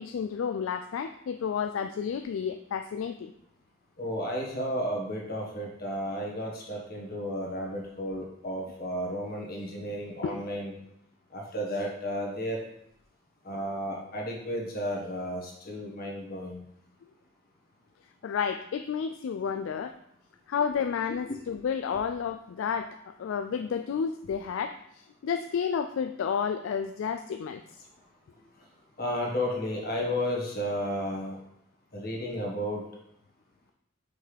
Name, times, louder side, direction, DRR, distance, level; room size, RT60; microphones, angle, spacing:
voice 1, 0.0-3.3 10.2-10.4 18.2-20.0 20.5-24.7 25.2-27.6, left 7 dB, 70° left, 8 dB, 0.3 m, -31 dB
voice 2, 4.0-10.7 11.3-12.6 13.4-16.6 19.5-19.6 20.6-20.7 21.3-21.4 29.0-31.4 31.9-32.8, equal, 50° left, -1 dB, 1.6 m, -33 dB
5.9 x 5.4 x 3.4 m, 0.74 s
head